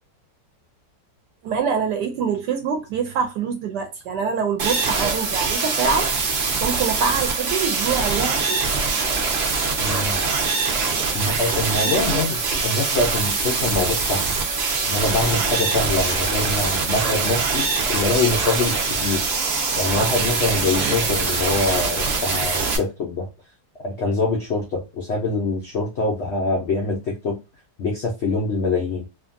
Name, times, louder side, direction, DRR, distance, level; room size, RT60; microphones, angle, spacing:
voice 1, 1.4-6.1 6.6-8.7 11.1-11.2 11.8-12.0, right 6 dB, 75° right, 1.1 m, -25 dB
sound 1, 4.6-22.8, right 4 dB, 55° right, 0.7 m, -23 dB
voice 2, 9.8-10.2 11.1-14.3 14.9-18.8 19.0-19.3 19.8-23.3 23.8-27.4 27.8-29.1, left 3 dB, 85° left, 0.6 m, -24 dB
2.7 x 2.6 x 2.5 m
omnidirectional pair, 1.9 m